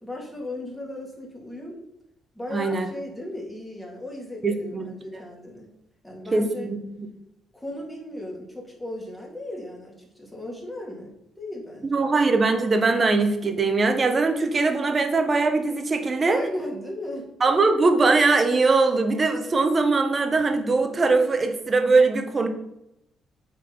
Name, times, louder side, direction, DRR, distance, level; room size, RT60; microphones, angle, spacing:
voice 1, 0.0-1.8 2.3-5.7 6.0-6.7 7.5-12.1 16.3-17.3, left 1 dB, 5° left, -2 dB, 2.8 m, -36 dB
voice 2, 2.5-2.9 4.4-4.9 6.3-6.8 11.8-16.4 17.4-22.5, right 3 dB, 35° right, 7 dB, 1.2 m, -21 dB
8.3 x 4.4 x 5.5 m, 0.84 s
cardioid pair, 90°, 0 cm